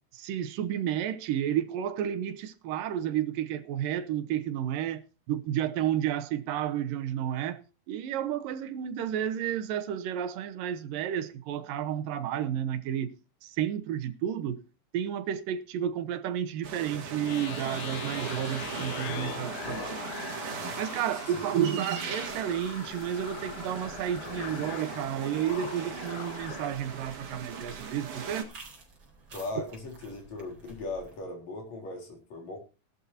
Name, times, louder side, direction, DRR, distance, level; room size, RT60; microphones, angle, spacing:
voice 1, 0.1-5.0 5.3-7.6 7.9-13.1 13.4-14.6 14.9-20.2 20.8-28.5, right 10 dB, 75° right, 2.6 m, -31 dB
sound 1, 16.6-28.4, right 5 dB, 60° right, 3.6 m, -39 dB
sound 2, 17.2-26.7, left 13 dB, 85° left, 2.7 m, -42 dB
sound 3, 22.2-31.2, right 4 dB, 35° right, 4.4 m, -54 dB
voice 2, 29.3-32.6, left 2 dB, 50° left, 4.7 m, -38 dB
17.5 x 12.0 x 2.7 m
omnidirectional pair, 4.1 m